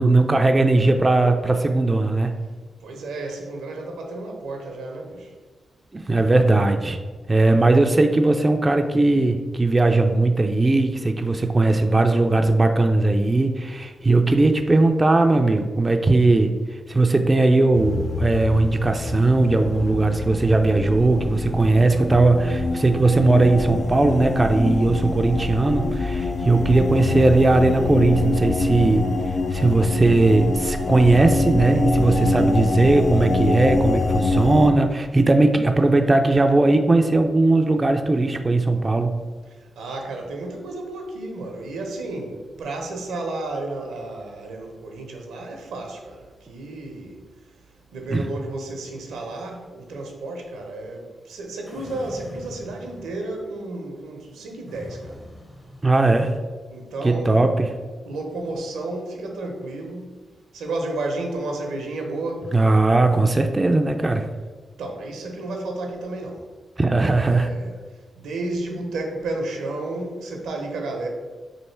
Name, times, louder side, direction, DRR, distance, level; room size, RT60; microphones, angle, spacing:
voice 1, 0.0-2.3 5.9-7.0 7.3-16.5 16.9-29.0 29.5-39.1 48.1-48.3 55.8-56.3 57.0-57.7 62.5-64.2 66.8-67.5, right 2 dB, 30° right, 5 dB, 0.3 m, -18 dB
voice 2, 2.8-5.3 39.6-47.2 47.9-55.2 56.7-57.5 58.0-60.1 60.5-62.5 64.8-66.4 67.0-67.7 68.2-71.1, right 2 dB, 90° right, 2 dB, 0.6 m, -32 dB
sound 1, 17.7-34.7, left 3 dB, 55° left, 0.3 m, -25 dB
sound 2, 51.7-53.5 54.7-56.5, equal, 25° left, 0.8 m, -42 dB
3.2 x 2.6 x 4.3 m, 1.4 s
cardioid pair, 55°, 0 cm